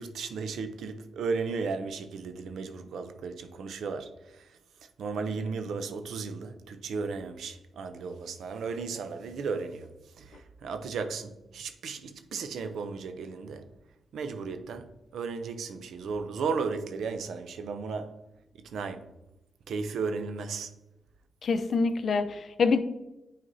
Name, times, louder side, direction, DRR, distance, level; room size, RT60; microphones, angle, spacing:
voice 1, 0.0-4.5 5.0-9.9 10.2-13.7 14.1-18.2 18.6-19.1 19.7-20.7, right 4 dB, 80° right, 0.5 m, -35 dB
voice 2, 21.4-22.8, left 4 dB, 65° left, 0.5 m, -25 dB
9.2 x 4.1 x 2.7 m
cardioid pair, 65°, 0 cm